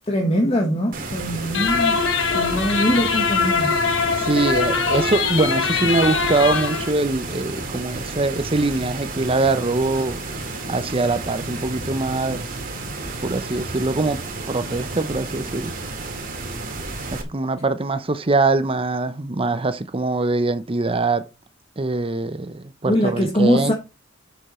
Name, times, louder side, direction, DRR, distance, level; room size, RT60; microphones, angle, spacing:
voice 1, 0.1-2.0 2.3-3.8 22.8-23.7, equal, 30° left, 1.6 m, -22 dB
sound 1, 0.9-17.2, right 3 dB, 45° right, 2.2 m, -32 dB
sound 2, 1.5-6.9, left 5 dB, 70° left, 1.4 m, -22 dB
voice 2, 4.2-10.2 10.7-12.4 13.2-15.7 17.1-21.3 21.8-23.7, right 3 dB, 30° right, 0.7 m, -23 dB
8.1 x 6.8 x 4.3 m
head